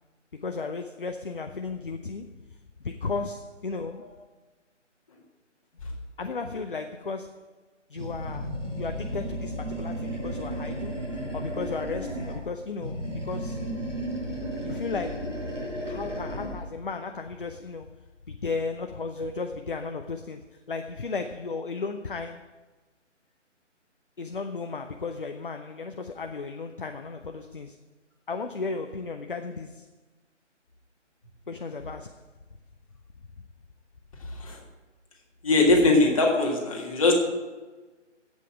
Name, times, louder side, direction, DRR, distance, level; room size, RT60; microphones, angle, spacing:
voice 1, 0.3-2.4 2.8-4.1 6.2-7.5 7.9-13.6 14.6-15.4 15.8-18.0 18.3-22.5 24.2-27.8 28.3-29.9 31.5-32.2, left 4 dB, 45° left, 0.6 m, -35 dB
Animal, 8.0-12.5 12.8-16.7, equal, 90° right, 4.6 m, -34 dB
voice 2, 34.2-34.6 35.4-37.1, left 2 dB, 30° left, 1.8 m, -22 dB
8.3 x 8.2 x 9.0 m
figure-of-eight pair, 150°, 37 cm